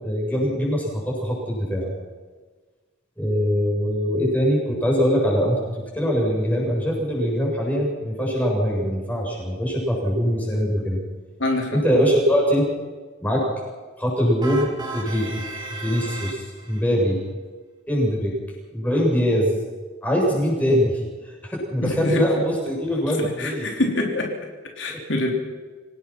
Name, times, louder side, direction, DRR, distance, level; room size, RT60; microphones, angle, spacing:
voice 1, 0.0-1.9 3.2-5.6 5.9-11.0 11.7-12.7 13.2-13.4 14.0-14.7 14.9-15.3 15.8-17.2 17.9-18.3 18.7-19.6 20.0-21.1 21.4-23.7 24.9-25.0, equal, 10° left, -3 dB, 7.8 m, -22 dB
voice 2, 11.4-11.8 21.8-22.2 23.2-24.3 24.8-25.3, left 2 dB, 75° left, 1 dB, 3.5 m, -25 dB
sound 1, 14.4-16.8, right 3 dB, 20° right, 3.9 m, -35 dB
27.5 x 18.0 x 6.1 m, 1.4 s
head